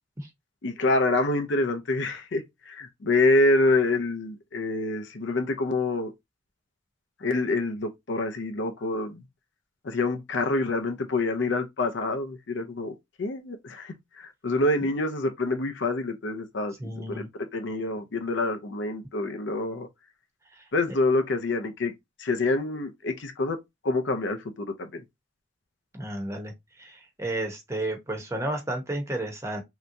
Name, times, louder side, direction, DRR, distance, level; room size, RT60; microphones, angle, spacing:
voice 1, 0.6-6.1 7.2-9.2 9.8-19.9 20.7-21.9 22.2-23.6 23.8-25.0, left 2 dB, 60° left, 0.5 m, -27 dB
voice 2, 16.8-17.3 20.5-20.6 25.9-29.6, right 1 dB, 15° right, 0.8 m, -32 dB
3.3 x 2.8 x 2.6 m
head